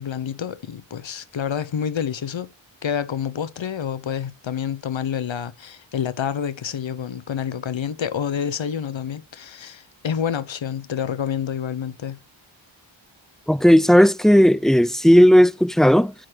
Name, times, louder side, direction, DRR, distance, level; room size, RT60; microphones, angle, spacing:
voice 1, 0.0-2.5 2.8-12.2, left 8 dB, 70° left, 0.9 m, -28 dB
voice 2, 13.5-16.1, equal, ahead, 0.3 m, -14 dB
9.0 x 3.8 x 5.0 m
wide cardioid pair, 75°, 47 cm